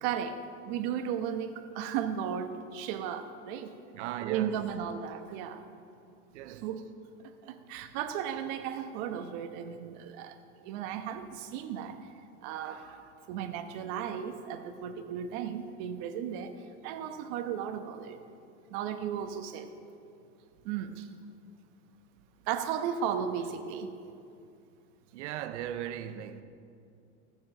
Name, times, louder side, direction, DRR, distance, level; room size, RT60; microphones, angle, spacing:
voice 1, 0.0-3.7 4.2-5.6 6.5-6.8 7.4-10.3 10.6-12.1 12.4-16.6 16.8-18.2 18.7-19.7 20.6-21.1 22.5-23.9, right 8 dB, 60° right, 1.1 m, -35 dB
voice 2, 3.9-4.6 6.3-6.7 25.1-26.4, right 11 dB, 80° right, 0.7 m, -38 dB
17.5 x 7.1 x 6.2 m
supercardioid pair, 105°, 34 cm